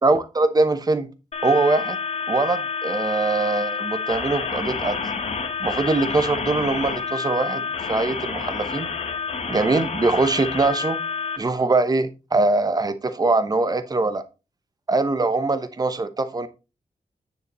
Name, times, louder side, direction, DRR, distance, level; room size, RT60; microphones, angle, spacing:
voice 1, 0.0-1.1 1.4-2.0 2.3-5.1 5.6-8.9 9.5-11.0 11.4-14.2 14.9-16.5, right 3 dB, 25° right, 0.9 m, -22 dB
sound 1, 1.3-11.4, left 5 dB, 50° left, 1.2 m, -29 dB
9.6 x 6.8 x 3.1 m
wide cardioid pair, 165°, 14 cm